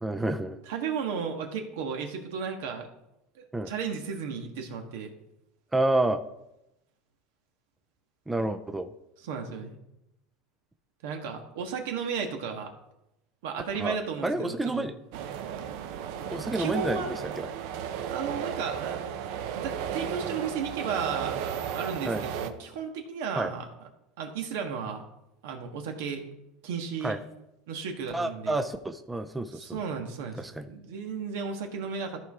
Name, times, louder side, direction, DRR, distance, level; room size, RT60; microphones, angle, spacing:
voice 1, 0.0-0.6 3.5-3.7 5.7-6.2 8.3-8.9 13.7-14.0 14.2-14.9 16.3-17.5 22.0-22.2 23.4-23.5 27.0-27.2 28.1-29.8 30.4-30.7, right 2 dB, 10° right, 8 dB, 0.4 m, -29 dB
voice 2, 0.7-2.9 3.3-5.1 9.2-9.8 11.0-12.7 13.4-14.9 16.5-17.1 18.1-19.0 19.5-23.6 24.2-25.0 25.4-26.2 26.6-27.1 27.7-28.6 29.5-32.2, right 6 dB, 80° right, 4 dB, 1.5 m, -34 dB
sound 1, 15.1-22.5, right 8 dB, 65° right, 0.7 m, -34 dB
14.0 x 4.7 x 3.6 m, 0.87 s
supercardioid pair, 150°, 0 cm